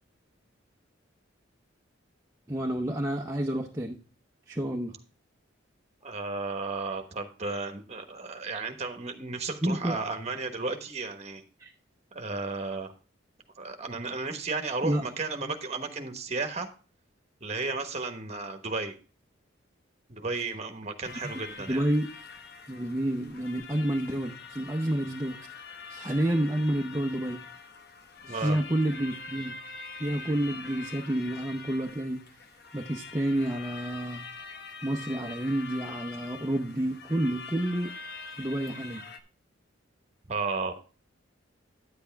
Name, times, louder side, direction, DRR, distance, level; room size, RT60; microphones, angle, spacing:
voice 1, 2.5-4.0 4.5-4.9 9.6-10.0 11.6-11.7 14.8-15.0 21.2-21.3 21.6-22.1 22.7-25.4 25.9-27.4 28.3-29.6 30.0-32.2 32.7-34.2 34.8-37.9 38.4-39.0, right 1 dB, 15° right, 0 dB, 0.7 m, -29 dB
voice 2, 6.0-11.4 12.1-12.9 13.6-16.7 17.4-18.9 20.1-21.8 28.2-28.6 40.3-40.7, right 3 dB, 35° right, 6 dB, 1.2 m, -33 dB
sound 1, 21.0-39.2, left 4 dB, 55° left, 0.9 m, -44 dB
9.7 x 8.1 x 3.4 m, 0.36 s
head